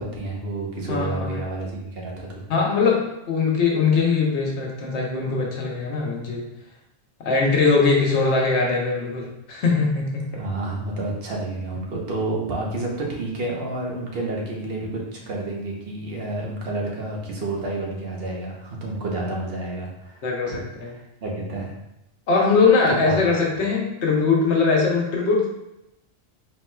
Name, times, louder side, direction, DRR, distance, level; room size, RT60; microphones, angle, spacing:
voice 1, 0.0-2.4 10.3-20.6 20.9-21.7 22.9-23.2, right 2 dB, 60° right, -2 dB, 1.1 m, -30 dB
voice 2, 0.9-1.4 2.5-6.4 7.2-10.4 20.2-20.9 22.3-25.5, left 4 dB, 85° left, -1 dB, 1.1 m, -21 dB
4.3 x 3.9 x 2.3 m, 0.88 s
omnidirectional pair, 1.1 m